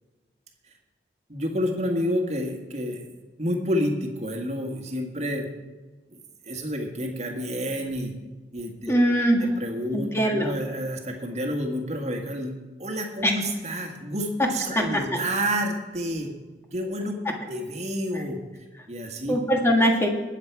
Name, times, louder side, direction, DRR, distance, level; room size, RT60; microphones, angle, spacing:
voice 1, 1.3-3.0 3.4-5.5 6.1-6.2 6.4-8.1 8.5-9.0 9.4-12.5 12.8-16.3 16.7-18.4 18.9-19.4, equal, 40° right, 2 dB, 1.7 m, -29 dB
voice 2, 8.9-9.4 9.9-10.5 13.2-13.3 14.4-14.5 14.7-15.2 19.3-20.1, equal, 15° left, 2 dB, 1.5 m, -22 dB
19.5 x 7.4 x 4.7 m, 1.3 s
head